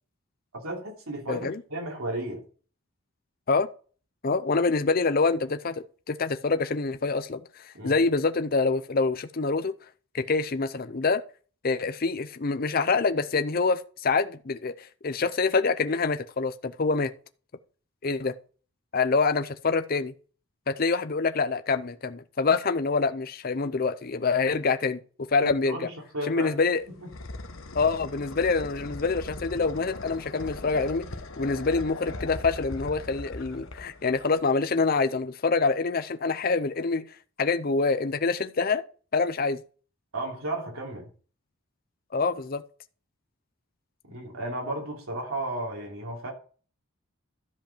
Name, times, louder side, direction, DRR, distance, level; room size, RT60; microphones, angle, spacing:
voice 1, 0.5-2.4 7.7-8.0 25.4-26.5 27.0-27.1 40.1-41.1 44.1-46.3, right 1 dB, 85° right, 3.3 m, -34 dB
voice 2, 1.3-1.6 3.5-3.7 4.2-9.7 10.1-11.2 11.6-17.1 18.0-18.3 18.9-20.1 20.7-25.0 25.3-25.9 26.3-26.8 27.7-31.1 31.4-37.0 37.4-38.8 39.1-39.6 42.1-42.6, left 4 dB, 45° left, 0.6 m, -26 dB
sound 1, 26.6-34.5, left 2 dB, 70° left, 1.2 m, -39 dB
13.0 x 5.3 x 5.0 m
head